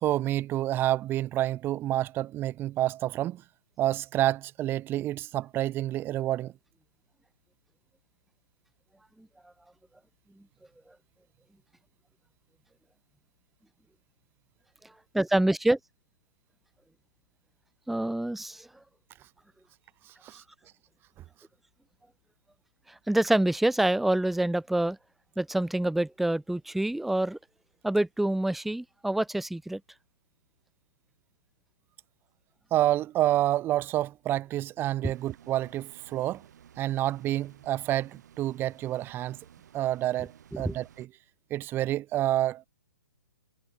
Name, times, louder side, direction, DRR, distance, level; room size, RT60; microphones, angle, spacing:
voice 1, 0.0-3.4 3.8-6.5 20.2-20.4 32.7-36.4 36.8-39.4 39.7-41.1 41.5-42.7, right 14 dB, 20° right, 1.1 m, -28 dB
voice 2, 15.1-15.8 17.9-18.7 22.9-25.0 25.4-27.4 27.8-29.8 40.6-40.8, right 1 dB, ahead, 0.9 m, -26 dB
sound 1, 35.0-41.1, right 9 dB, 60° right, 4.4 m, -55 dB
hypercardioid pair, 140°, 11 cm